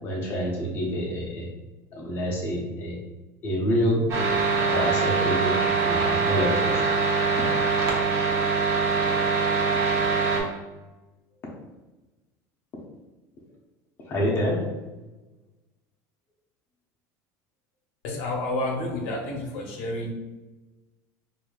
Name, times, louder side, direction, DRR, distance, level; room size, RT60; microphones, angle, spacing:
voice 1, 0.0-1.5 2.0-3.0 3.4-4.2 4.6-6.8 14.1-14.7, equal, 30° left, -3 dB, 0.7 m, -27 dB
sound 1, 4.1-10.4, right 4 dB, 40° right, 0.9 m, -23 dB
voice 2, 18.0-20.1, left 1 dB, 80° left, 0 dB, 0.8 m, -30 dB
4.7 x 2.6 x 2.3 m, 1.2 s
cardioid pair, 165°, 8 cm